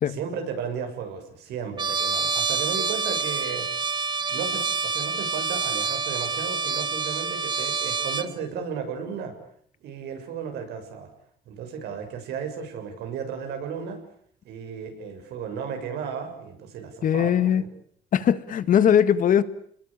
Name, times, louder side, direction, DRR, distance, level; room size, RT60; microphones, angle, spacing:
voice 1, 0.1-3.7 4.3-9.4 9.8-11.1 11.5-14.0 14.4-17.7, right 6 dB, 75° right, 6 dB, 7.0 m, -34 dB
Trumpet, 1.8-8.3, right 4 dB, 25° right, 1.2 m, -27 dB
voice 2, 17.0-17.6 18.1-19.4, left 9 dB, 55° left, 14 dB, 1.7 m, -20 dB
29.5 x 21.0 x 8.6 m, 0.64 s
cardioid pair, 110°, 17 cm